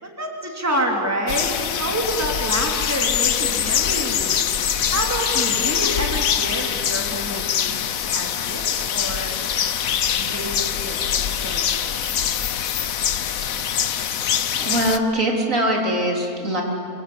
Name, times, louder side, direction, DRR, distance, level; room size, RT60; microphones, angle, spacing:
voice 1, 0.0-9.4 10.2-11.0 11.3-12.0, right 1 dB, 10° right, 0 dB, 3.2 m, -28 dB
sound 1, 1.3-15.0, left 9 dB, 75° left, 1.3 m, -23 dB
voice 2, 14.6-16.6, right 1 dB, 65° right, 0 dB, 3.9 m, -22 dB
27.0 x 23.0 x 8.7 m, 2.5 s
omnidirectional pair, 1.5 m